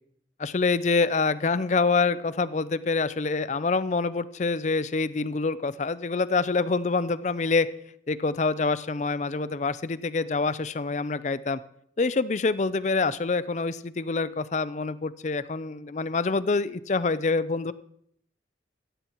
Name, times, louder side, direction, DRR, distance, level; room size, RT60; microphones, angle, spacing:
voice 1, 0.4-7.7 8.1-11.6 12.0-17.7, left 4 dB, 40° left, 15 dB, 0.5 m, -26 dB
16.0 x 15.0 x 3.0 m, 0.70 s
head